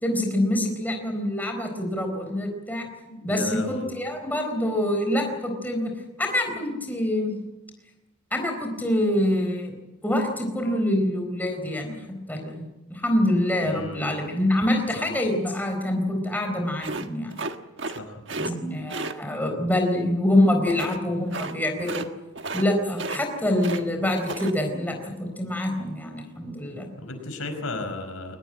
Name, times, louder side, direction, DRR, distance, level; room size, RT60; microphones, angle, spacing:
voice 1, 0.0-2.9 3.2-5.9 6.2-7.4 8.3-9.7 10.0-12.0 12.3-12.6 12.9-17.3 18.4-22.1 22.5-26.9, left 1 dB, 10° left, 3 dB, 4.1 m, -25 dB
voice 2, 3.1-3.9 13.7-14.1 14.9-15.1 17.9-18.5 27.0-28.4, left 2 dB, 90° left, 6 dB, 5.1 m, -34 dB
sound 1, 16.8-18.0 18.3-18.5 18.9-19.1 20.7-21.0 21.3-21.5 21.8-22.1 22.4-22.7 22.9-23.8 24.1-24.5, right 3 dB, 55° right, 1.5 m, -32 dB
23.0 x 20.0 x 8.9 m, 1.0 s
head